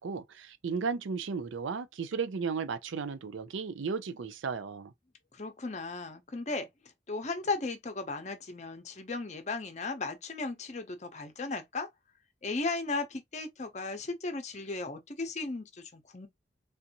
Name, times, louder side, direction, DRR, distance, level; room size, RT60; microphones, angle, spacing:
voice 1, 0.0-4.9, right 5 dB, 85° right, 0.5 m, -34 dB
voice 2, 5.3-11.9 12.4-16.3, left 3 dB, 35° left, 0.7 m, -36 dB
3.4 x 2.6 x 2.8 m
head